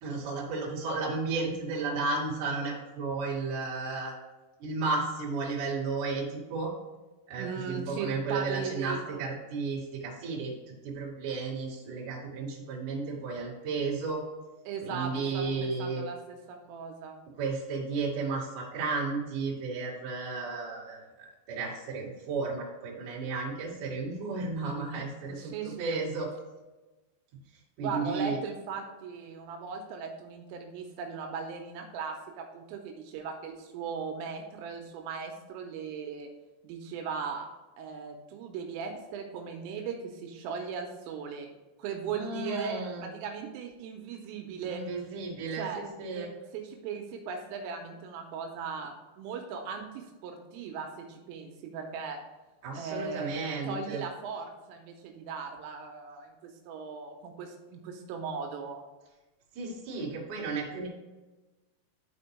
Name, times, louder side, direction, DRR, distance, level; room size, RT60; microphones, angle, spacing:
voice 1, 0.0-4.1 4.6-6.7 7.3-10.5 10.8-14.2 14.8-16.0 17.4-25.5 25.8-26.3 27.8-28.4 42.1-43.1 44.6-46.3 52.6-54.0 59.5-60.9, right 4 dB, 50° right, -6 dB, 2.8 m, -33 dB
voice 2, 7.4-9.2 14.7-17.2 25.3-26.0 27.8-36.3 36.6-37.5 37.8-41.5 41.8-44.8 45.5-45.8 46.1-52.2 52.7-58.8, right 6 dB, 85° right, 3 dB, 3.2 m, -38 dB
12.5 x 4.3 x 3.3 m, 1.1 s
omnidirectional pair, 5.9 m